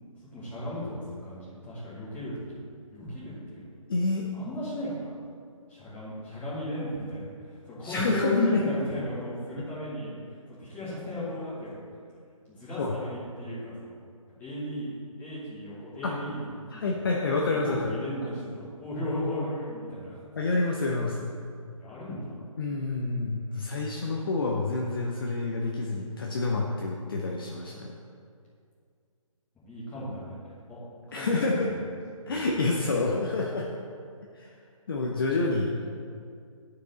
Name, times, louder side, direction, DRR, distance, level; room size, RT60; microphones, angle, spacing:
voice 1, 0.3-2.6 2.9-3.6 4.3-5.1 5.7-10.1 10.6-11.8 12.6-13.9 14.4-14.9 15.2-17.0 17.5-20.2 21.8-22.4 29.7-30.8 31.1-31.6 32.3-32.4, left 1 dB, 10° left, -11 dB, 2.0 m, -35 dB
voice 2, 3.9-4.3 7.8-8.6 12.8-12.9 16.0-16.1 16.7-17.9 20.4-21.3 22.6-27.9 31.1-31.7 32.3-33.7 34.3-34.5 34.9-35.7, left 3 dB, 40° left, -1 dB, 0.7 m, -28 dB
10.5 x 4.8 x 4.0 m, 2.2 s
figure-of-eight pair, 150°, 18 cm